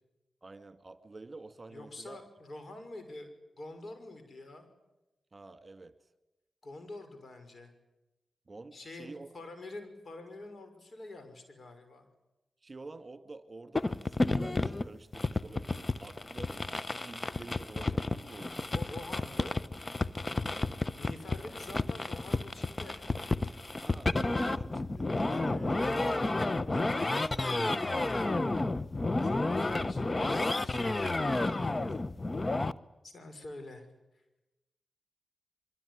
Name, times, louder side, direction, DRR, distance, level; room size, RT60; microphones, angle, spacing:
voice 1, 0.4-2.2 5.3-6.0 8.5-9.4 12.6-18.8 20.4-20.8 23.8-28.0, right 3 dB, 40° right, 10 dB, 2.1 m, -49 dB
voice 2, 1.7-3.3 3.6-4.7 6.6-7.7 8.7-12.1 18.7-19.6 21.0-23.0 23.4-23.5 25.3-26.0 29.0-32.0 33.0-33.9, left 2 dB, 60° left, 8 dB, 5.8 m, -47 dB
sound 1, 13.8-32.7, left 2 dB, 35° left, 1.0 m, -31 dB
24.0 x 23.5 x 9.8 m, 0.98 s
supercardioid pair, 45°, 0 cm